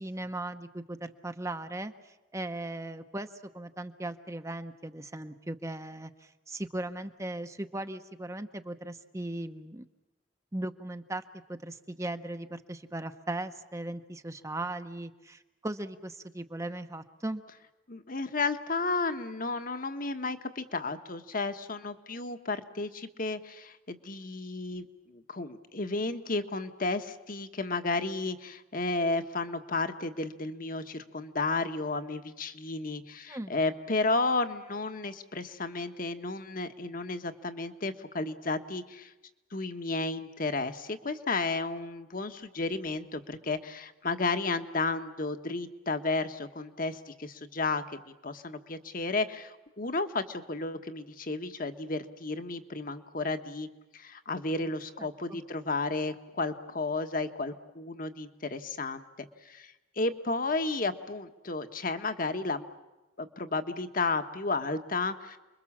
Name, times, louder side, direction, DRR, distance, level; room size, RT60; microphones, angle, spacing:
voice 1, 0.0-3.3 3.5-9.8 10.5-11.2 11.5-17.4 33.3-33.5 55.0-55.4, right 1 dB, 15° right, 8 dB, 0.9 m, -38 dB
voice 2, 17.9-24.9 25.1-39.1 39.5-53.7 53.9-62.7 63.2-65.4, left 3 dB, 45° left, 9 dB, 1.4 m, -33 dB
29.0 x 22.5 x 7.4 m, 1.1 s
head